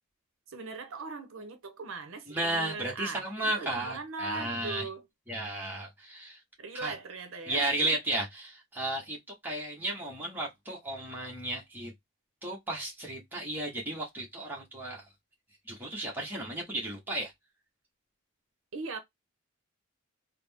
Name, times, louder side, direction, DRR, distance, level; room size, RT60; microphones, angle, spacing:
voice 1, 0.5-5.0 6.6-8.0 18.7-19.0, right 3 dB, 70° right, 0.7 m, -40 dB
voice 2, 2.3-4.9 5.3-6.4 6.7-6.9 7.4-9.2 9.4-11.9 12.4-15.0 15.7-17.3, right 1 dB, 10° right, 1.0 m, -34 dB
3.9 x 2.1 x 3.4 m
head